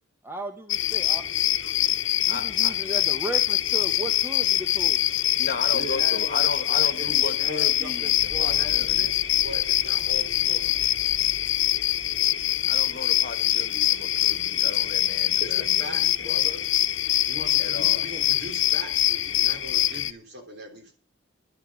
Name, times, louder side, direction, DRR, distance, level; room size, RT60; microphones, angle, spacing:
voice 1, 0.2-1.2 2.3-5.0, right 1 dB, 10° right, 0.8 m, -35 dB
sound 1, 0.7-20.1, left 13 dB, 65° left, 0.9 m, -24 dB
voice 2, 2.3-2.8 5.4-9.1 12.6-16.3 17.6-18.1, left 3 dB, 45° left, 1.3 m, -35 dB
voice 3, 5.7-9.1 9.4-10.7 14.6-14.7 15.4-16.6 17.2-20.9, equal, 55° right, 3.3 m, -39 dB
Run, 8.2-13.0, equal, 5° left, 6.1 m, -46 dB
11.0 x 10.5 x 6.2 m
head